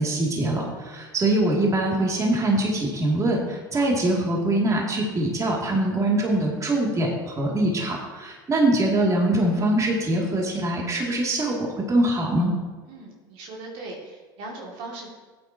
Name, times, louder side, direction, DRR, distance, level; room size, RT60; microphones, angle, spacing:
voice 1, 0.0-12.5, right 1 dB, 30° right, -2 dB, 2.5 m, -23 dB
voice 2, 12.8-15.1, right 2 dB, 65° right, -2 dB, 2.4 m, -39 dB
14.5 x 9.0 x 2.9 m, 1.3 s
hypercardioid pair, 85°, 11 cm